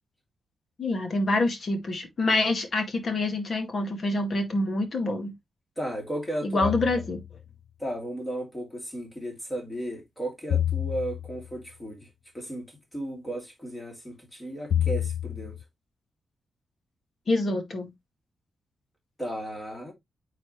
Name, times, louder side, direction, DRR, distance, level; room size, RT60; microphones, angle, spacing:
voice 1, 0.8-5.3 6.4-7.2 17.3-17.9, left 2 dB, 40° left, 2.1 m, -26 dB
voice 2, 5.8-6.7 7.8-12.1 12.3-12.6 12.9-15.6 19.2-19.9, right 1 dB, 10° left, 2.8 m, -34 dB
sound 1, 6.6-7.4 10.5-11.6 14.7-15.6, left 10 dB, 70° left, 0.4 m, -29 dB
8.9 x 4.2 x 3.2 m
wide cardioid pair, 165°, 0 cm